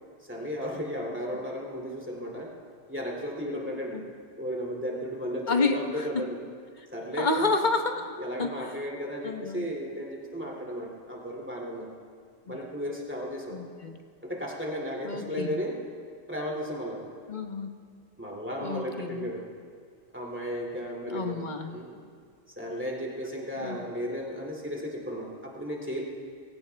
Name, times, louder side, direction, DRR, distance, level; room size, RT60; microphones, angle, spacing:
voice 1, 0.3-2.5 2.9-4.0 4.4-6.4 6.9-7.5 8.2-11.9 12.5-13.6 14.2-15.8 16.3-17.1 18.2-19.5 20.1-22.0 22.6-26.0, equal, 10° right, -1 dB, 2.5 m, -34 dB
voice 2, 5.5-6.3 7.2-8.1 8.4-8.5 9.2-9.7 12.5-12.6 13.5-14.0 15.0-15.6 17.3-17.7 18.6-19.3 21.1-21.7 23.6-23.8, left 3 dB, 40° left, 5 dB, 1.1 m, -29 dB
25.0 x 16.5 x 3.4 m, 2.1 s
omnidirectional pair, 1.3 m